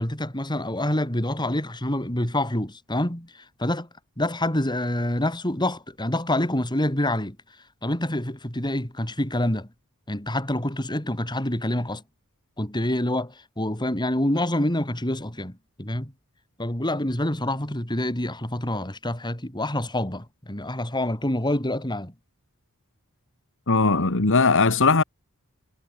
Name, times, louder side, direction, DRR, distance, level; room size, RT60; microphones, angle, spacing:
voice 1, 0.0-3.9 4.2-7.4 7.8-9.7 10.1-12.0 12.6-16.1 16.6-22.1, left 1 dB, 20° left, 4.3 m, -27 dB
voice 2, 23.7-25.0, left 4 dB, 60° left, 1.8 m, -19 dB
head